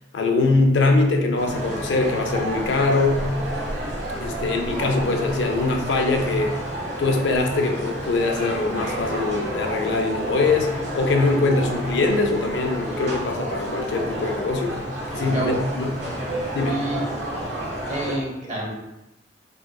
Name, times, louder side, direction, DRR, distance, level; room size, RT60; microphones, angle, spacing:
voice 1, 0.1-3.2 4.2-6.6 7.0-14.8 15.1-16.0 16.5-16.8, left 3 dB, 75° left, 3 dB, 0.4 m, -22 dB
sound 1, 1.4-18.2, right 1 dB, 70° right, 0.9 m, -30 dB
voice 2, 15.1-15.6 16.7-17.0 17.9-18.7, right 1 dB, 40° right, -4 dB, 0.9 m, -29 dB
3.5 x 2.8 x 2.2 m, 0.93 s
head